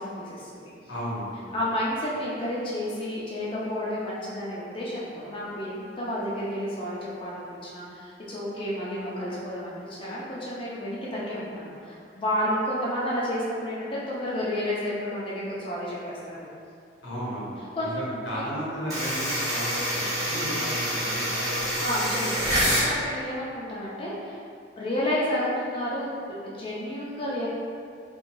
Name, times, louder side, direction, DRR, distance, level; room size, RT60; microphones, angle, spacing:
voice 1, 0.0-0.7 1.5-16.5 17.7-17.9 18.3-18.5 21.8-24.4 24.8-27.5, left 1 dB, 30° left, -7 dB, 0.4 m, -31 dB
voice 2, 0.9-1.6 17.0-21.8, equal, 85° left, -7 dB, 0.9 m, -35 dB
sound 1, 18.9-22.9, equal, 20° right, 0.9 m, -27 dB
2.9 x 2.2 x 2.6 m, 2.3 s
head